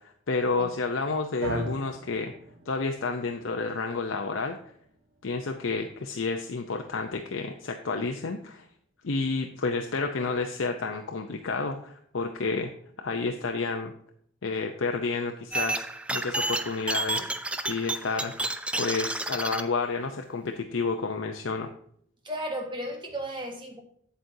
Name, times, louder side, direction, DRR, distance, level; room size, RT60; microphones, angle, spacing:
voice 1, 0.3-2.3 2.7-4.6 5.2-8.6 9.0-12.7 13.0-13.9 14.4-15.9 16.1-17.3 17.7-18.3 18.8-21.7, left 4 dB, 75° left, 4 dB, 0.7 m, -30 dB
sound 1, 1.4-9.7, right 2 dB, 80° right, 1.5 m, -43 dB
sound 2, 15.5-19.6, right 2 dB, 5° right, 0.3 m, -30 dB
voice 2, 22.2-23.8, equal, 25° right, 2 dB, 1.4 m, -34 dB
8.4 x 7.8 x 2.7 m, 0.65 s
head